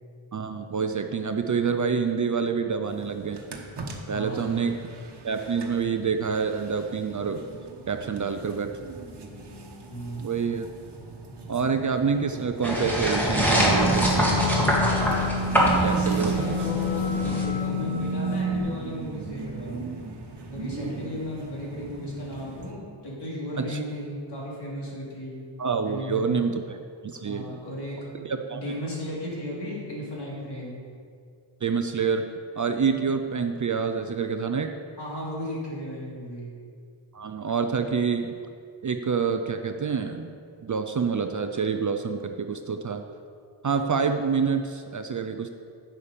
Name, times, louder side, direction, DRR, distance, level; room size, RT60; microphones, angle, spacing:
voice 1, 0.3-3.4 4.1-4.8 5.2-7.4 7.9-8.7 10.2-10.7 11.5-14.3 15.8-16.3 23.6-23.8 25.6-26.8 27.0-27.6 28.2-28.6 31.6-32.2 32.6-34.7 37.1-38.4 38.8-40.3 40.6-43.0 43.6-45.5, right 5 dB, 40° right, 6 dB, 0.5 m, -27 dB
sound 1, 2.9-22.7, right 3 dB, 55° right, 1.2 m, -41 dB
voice 2, 4.1-4.8 9.9-10.3 15.6-19.9 20.5-25.4 25.8-26.5 27.2-28.1 28.5-30.8 35.0-36.5, equal, 55° left, -5 dB, 2.9 m, -35 dB
sound 2, 12.6-17.4, equal, 5° left, 1.7 m, -24 dB
sound 3, 13.5-18.6, equal, 30° left, 2.8 m, -28 dB
11.0 x 7.1 x 5.2 m, 2.3 s
wide cardioid pair, 175°, 48 cm